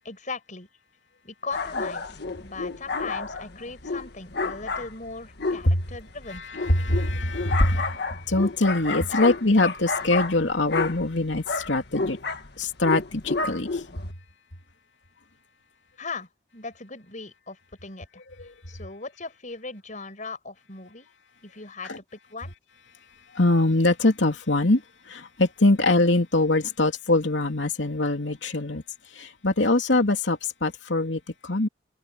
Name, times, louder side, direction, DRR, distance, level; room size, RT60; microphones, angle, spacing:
voice 1, 0.0-0.7 1.2-6.4 16.0-21.1 21.4-22.5, left 3 dB, 45° left, 6.4 m, -39 dB
sound 1, 1.5-14.1, left 3 dB, 60° left, 1.8 m, -31 dB
voice 2, 6.7-8.0 8.3-12.2 12.6-13.8 21.9-22.0 23.3-24.8 25.1-28.8 29.2-31.7, left 2 dB, 80° left, 2.9 m, -23 dB
head